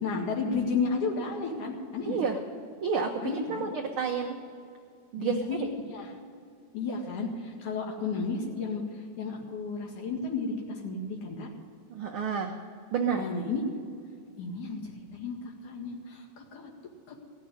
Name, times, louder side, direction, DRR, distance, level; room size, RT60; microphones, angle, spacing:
voice 1, 0.0-2.2 3.2-3.7 5.2-6.1 6.7-11.5 13.1-13.6 14.4-15.4 15.6-16.7 17.1-17.2, left 4 dB, 75° left, -1 dB, 3.5 m, -33 dB
voice 2, 2.1-2.4 2.8-3.2 3.5-4.4 5.1-5.4 11.9-12.5 12.9-13.2, right 6 dB, 85° right, 3 dB, 1.1 m, -29 dB
17.0 x 6.6 x 9.9 m, 2.3 s
omnidirectional pair, 3.5 m